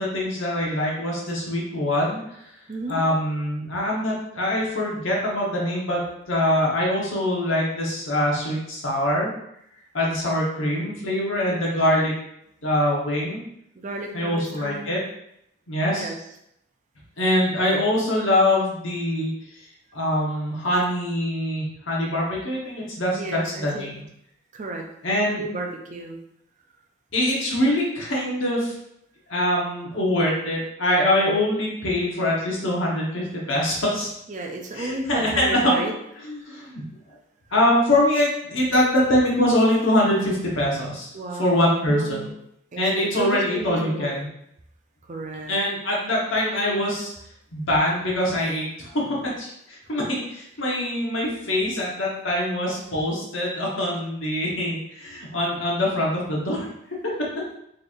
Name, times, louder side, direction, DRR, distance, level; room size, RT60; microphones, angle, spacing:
voice 1, 0.0-2.2 2.9-6.0 6.3-9.3 9.9-12.1 12.6-13.4 14.1-15.0 15.7-16.1 17.2-19.3 19.9-24.0 25.0-25.4 27.1-28.7 29.3-34.1 34.7-35.9 36.3-36.8 37.5-41.1 41.4-42.3 42.8-44.3 45.5-47.1 47.5-56.7, left 1 dB, 75° left, -3 dB, 1.2 m, -23 dB
voice 2, 2.7-3.0 13.7-14.9 15.9-16.2 23.1-23.9 24.5-24.9 25.3-26.2 34.3-35.9 36.5-36.6 41.1-42.3 42.7-44.2 45.1-45.5, right 3 dB, 40° right, 2 dB, 0.5 m, -33 dB
4.0 x 3.2 x 2.5 m, 0.75 s
head